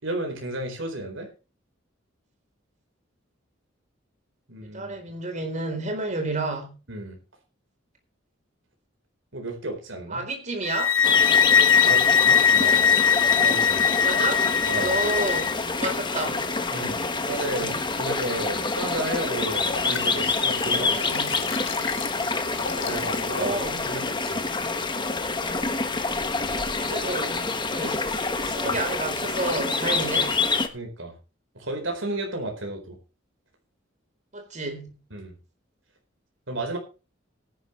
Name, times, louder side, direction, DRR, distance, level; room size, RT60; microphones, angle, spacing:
voice 1, 0.0-1.3 4.5-5.0 6.9-7.2 9.3-10.2 11.8-12.9 13.4-13.9 14.7-14.9 16.7-20.9 21.3-21.5 22.8-23.6 23.9-24.4 26.4-26.6 28.6-28.8 30.7-31.1 31.5-33.0 35.1-35.4 36.5-36.8, right 2 dB, 70° right, 2 dB, 4.5 m, -33 dB
voice 2, 4.6-6.7 10.1-11.0 14.0-14.4 14.7-16.5 17.6-17.8 20.7-21.3 23.3-23.8 26.8-27.3 27.7-28.1 28.4-30.6 34.3-34.9, right 2 dB, 40° right, 5 dB, 4.0 m, -30 dB
sound 1, 10.7-15.6, left 7 dB, 85° left, 1.0 m, -20 dB
sound 2, 11.0-30.7, left 3 dB, 25° left, 1.3 m, -27 dB
Liquid, 19.3-23.5 24.0-24.1, left 6 dB, 65° left, 1.7 m, -36 dB
17.5 x 11.0 x 3.3 m, 0.31 s
head